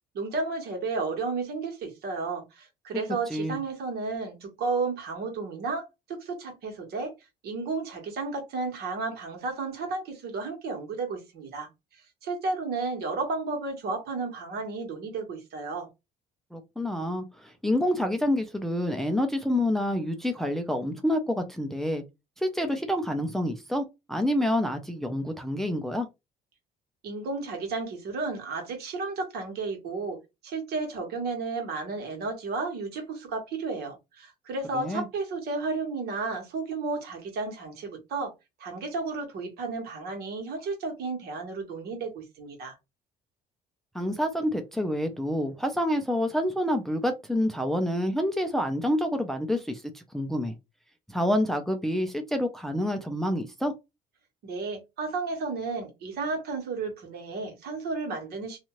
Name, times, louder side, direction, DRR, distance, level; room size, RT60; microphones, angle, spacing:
voice 1, 0.1-7.1 7.4-11.7 12.2-15.9 27.0-30.2 30.4-38.3 38.6-42.8 54.4-58.6, right 3 dB, 70° right, 1.4 m, -33 dB
voice 2, 3.3-3.6 16.5-22.0 22.4-26.1 34.7-35.1 43.9-50.5 51.1-53.7, left 1 dB, ahead, 0.5 m, -28 dB
2.7 x 2.4 x 3.0 m
cardioid pair, 110°, 17 cm